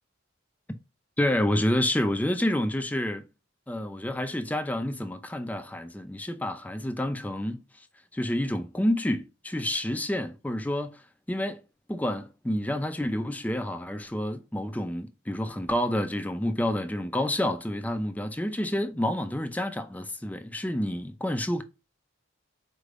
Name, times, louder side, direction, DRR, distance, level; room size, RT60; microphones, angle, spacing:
voice 1, 1.2-3.2 3.7-7.9 8.1-11.6 11.9-21.6, left 1 dB, 10° left, 0.4 m, -29 dB
4.4 x 3.3 x 2.4 m
head